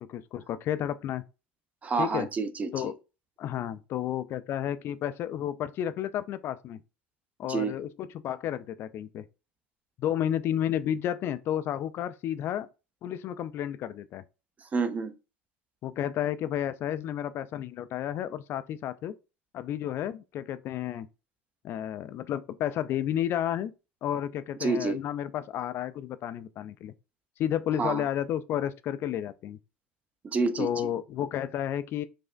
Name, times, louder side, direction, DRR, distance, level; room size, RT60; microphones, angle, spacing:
voice 1, 0.1-1.2 2.0-2.3 2.7-2.9 3.4-6.8 7.4-9.2 10.0-12.7 13.0-14.2 15.8-19.2 19.5-21.1 21.6-23.7 24.0-26.9 27.4-29.6 30.6-32.0, left 10 dB, 45° left, 0.3 m, -31 dB
voice 2, 1.8-2.9 7.5-7.8 14.7-15.1 24.6-25.0 27.8-28.1 30.2-30.7, right 4 dB, 25° right, 0.6 m, -28 dB
5.0 x 2.1 x 2.4 m
hypercardioid pair, 75°, 6 cm